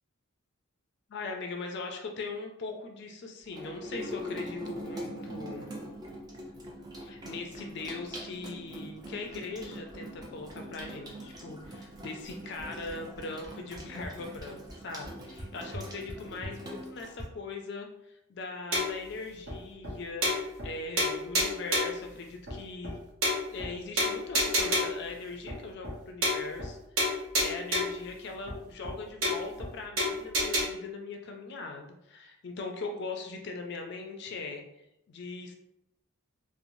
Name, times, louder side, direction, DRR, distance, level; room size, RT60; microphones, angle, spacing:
voice 1, 1.1-5.7 7.0-23.0 23.5-34.6 35.1-35.5, left 3 dB, 50° left, 3 dB, 0.4 m, -40 dB
Water tap faucet / Sink (filling or washing), 3.5-17.3, equal, 20° right, 0.3 m, -42 dB
sound 1, 18.7-19.1 19.5-19.6 19.8-19.9 20.2-20.7 21.0-22.0 22.5-22.6 22.8-22.9 23.2-23.7 24.0-25.0 25.5-25.6 25.8-26.0 26.2-26.7 27.0-28.0 28.5-28.6 28.8-28.9 29.2-29.7 30.0-30.6, equal, 65° right, 0.8 m, -29 dB
3.0 x 2.0 x 2.6 m, 0.83 s
head